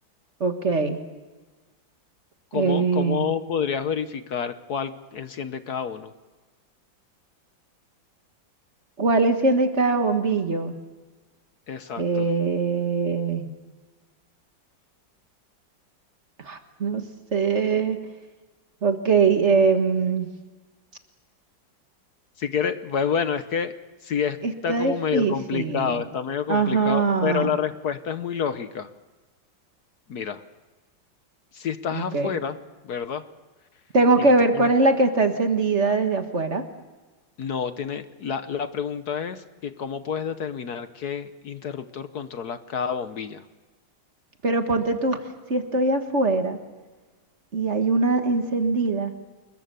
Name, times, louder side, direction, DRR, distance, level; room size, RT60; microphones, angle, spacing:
voice 1, 0.4-1.0 2.5-3.3 9.0-10.7 12.0-13.5 16.4-17.0 17.3-18.0 18.8-20.3 24.4-26.0 26.5-27.5 31.9-32.3 33.9-36.6 44.4-45.2 45.5-46.6 47.5-49.1, right 3 dB, 40° right, 6 dB, 1.7 m, -22 dB
voice 2, 2.5-6.1 11.7-12.3 22.4-23.7 24.0-28.9 30.1-30.4 31.5-32.6 32.8-33.2 34.2-34.7 37.4-43.4, left 7 dB, 60° left, 11 dB, 1.4 m, -29 dB
27.0 x 22.0 x 6.9 m, 1.2 s
omnidirectional pair, 2.0 m